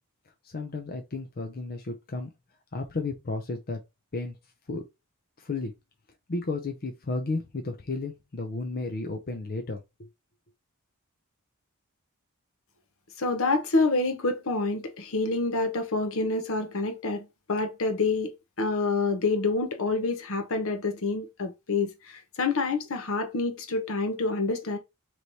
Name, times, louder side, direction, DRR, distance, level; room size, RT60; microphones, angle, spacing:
voice 1, 0.4-2.3 2.7-3.8 4.1-4.4 4.7-4.8 5.4-5.7 6.3-10.1, left 3 dB, 45° left, 0.6 m, -33 dB
voice 2, 13.2-24.8, left 3 dB, 65° left, 0.9 m, -27 dB
3.2 x 3.0 x 4.0 m
head